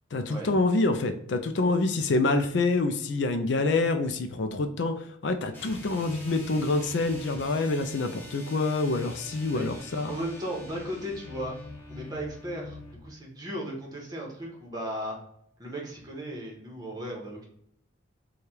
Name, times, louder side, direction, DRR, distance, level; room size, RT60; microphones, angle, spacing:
voice 1, 0.1-10.1, left 3 dB, 60° left, 7 dB, 0.4 m, -26 dB
sound 1, 5.5-13.0, left 2 dB, 10° left, 0.8 m, -44 dB
voice 2, 10.1-11.5 11.9-15.2 15.6-17.5, equal, 20° right, -2 dB, 1.1 m, -36 dB
3.3 x 2.3 x 4.2 m, 0.72 s
head